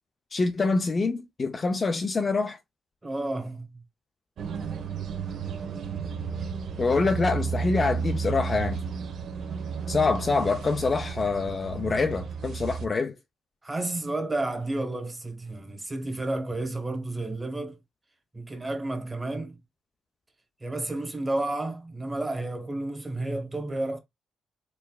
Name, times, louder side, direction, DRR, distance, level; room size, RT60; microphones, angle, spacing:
voice 1, 0.3-2.6 6.8-8.8 9.9-13.1, left 4 dB, 35° left, 0.5 m, -25 dB
voice 2, 3.0-3.8 13.6-17.8 18.3-19.6 20.6-24.0, right 2 dB, 15° right, 1.3 m, -31 dB
sound 1, 4.4-12.9, right 6 dB, 65° right, 0.9 m, -33 dB
4.6 x 3.2 x 2.3 m
cardioid pair, 90°, 0 cm